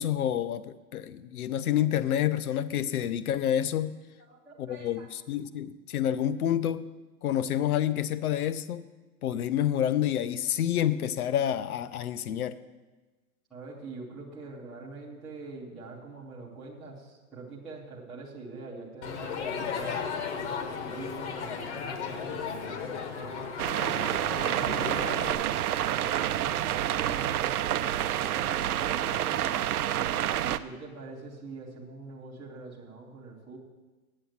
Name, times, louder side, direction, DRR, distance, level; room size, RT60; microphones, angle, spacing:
voice 1, 0.0-3.9 4.6-6.9 7.2-8.8 9.2-12.6, left 10 dB, 75° left, 15 dB, 0.7 m, -28 dB
voice 2, 4.3-5.1 13.5-20.0 20.7-23.5 24.4-25.6 25.9-29.6 30.4-33.6, right 3 dB, ahead, -11 dB, 0.4 m, -44 dB
Crowd, 19.0-25.3, left 6 dB, 50° left, 1.2 m, -35 dB
sound 1, 23.6-30.6, right 11 dB, 85° right, 0.6 m, -28 dB
8.2 x 7.8 x 8.5 m, 1.2 s
hypercardioid pair, 155°, 43 cm